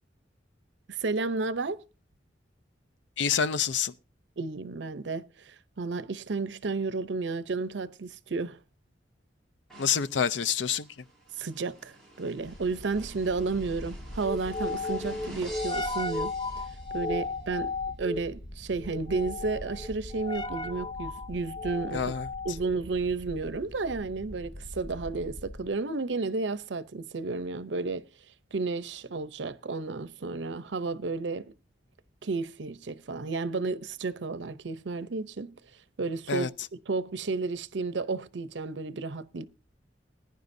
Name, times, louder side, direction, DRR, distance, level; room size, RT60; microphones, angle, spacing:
voice 1, 0.9-1.8 4.4-8.6 11.4-16.3 16.9-17.7 18.0-22.0 22.4-28.1 28.5-31.5 32.2-35.5 36.0-36.5 36.9-39.5, right 3 dB, 80° right, 0.7 m, -32 dB
voice 2, 3.2-3.9 9.8-10.9 21.9-22.3 36.3-36.5, left 7 dB, 85° left, 0.6 m, -27 dB
sound 1, 9.7-17.3, right 1 dB, 5° left, 6.1 m, -49 dB
sound 2, 12.4-25.8, left 2 dB, 25° left, 0.6 m, -36 dB
20.5 x 10.5 x 2.7 m
head